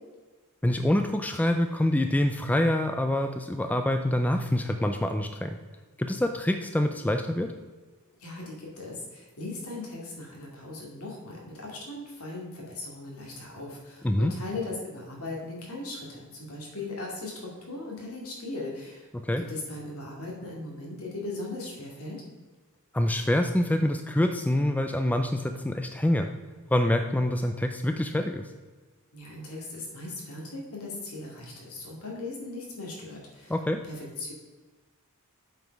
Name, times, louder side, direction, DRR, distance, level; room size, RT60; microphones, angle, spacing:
voice 1, 0.6-5.6 6.0-7.5 14.0-14.3 19.1-19.4 22.9-26.3 26.7-28.5 33.5-33.8, left 1 dB, 5° left, 6 dB, 0.4 m, -26 dB
voice 2, 8.2-19.1 19.5-22.2 29.1-33.5 33.8-34.3, left 2 dB, 70° left, -2 dB, 2.4 m, -38 dB
7.8 x 5.0 x 5.2 m, 1.3 s
head